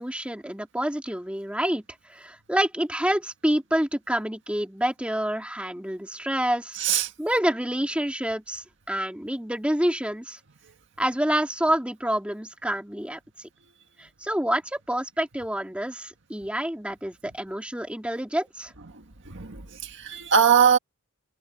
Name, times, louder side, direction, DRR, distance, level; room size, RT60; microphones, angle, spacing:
voice 1, 0.0-1.8 2.1-6.8 7.2-10.4 11.0-13.2 14.0-18.7, right 1 dB, 5° right, 2.5 m, -27 dB
voice 2, 6.8-7.1 18.9-20.8, right 7 dB, 60° right, 1.8 m, -22 dB
head